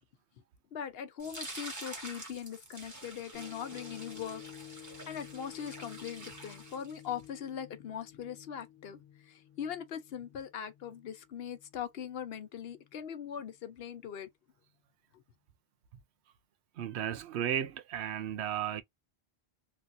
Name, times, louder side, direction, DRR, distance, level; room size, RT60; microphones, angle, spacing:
voice 1, 0.7-4.4 4.7-14.3, left 8 dB, 70° left, 0.9 m, -41 dB
sound 1, 1.2-7.2, right 2 dB, 15° right, 1.0 m, -47 dB
sound 2, 3.3-11.7 12.2-12.3, left 13 dB, 50° left, 1.2 m, -52 dB
voice 2, 16.8-18.8, right 10 dB, 90° right, 0.9 m, -34 dB
3.2 x 2.5 x 2.5 m
omnidirectional pair, 1.1 m